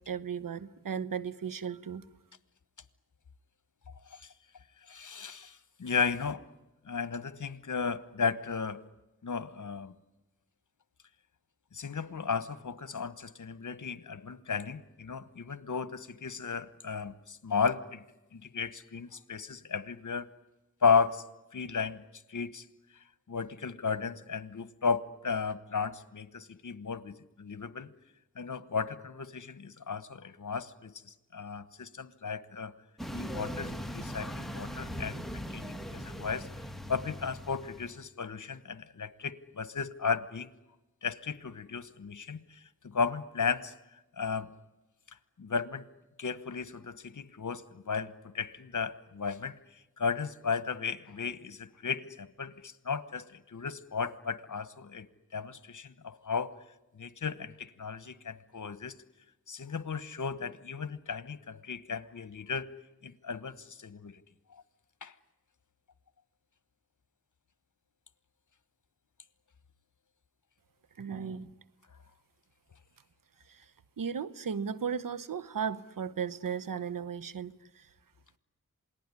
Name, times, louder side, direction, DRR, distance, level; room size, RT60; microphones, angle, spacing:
voice 1, 0.1-2.0 71.0-71.5 73.5-73.6 74.0-77.9, right 7 dB, 80° right, 17 dB, 1.0 m, -36 dB
voice 2, 4.9-6.4 6.8-8.8 9.2-9.9 11.7-18.0 18.3-20.3 20.8-21.2 21.5-22.0 22.3-22.6 23.3-27.9 28.4-32.7 33.1-36.5 36.9-40.5 41.0-42.6 42.8-43.7 44.2-44.5 45.4-45.8 46.2-49.6 50.0-56.5 57.0-58.9 59.5-62.7 63.0-64.2 65.0-65.1, left 5 dB, 65° left, 15 dB, 1.3 m, -34 dB
sound 1, 33.0-38.0, equal, ahead, 2.3 m, -40 dB
27.5 x 19.5 x 9.8 m, 0.99 s
cardioid pair, 45°, 33 cm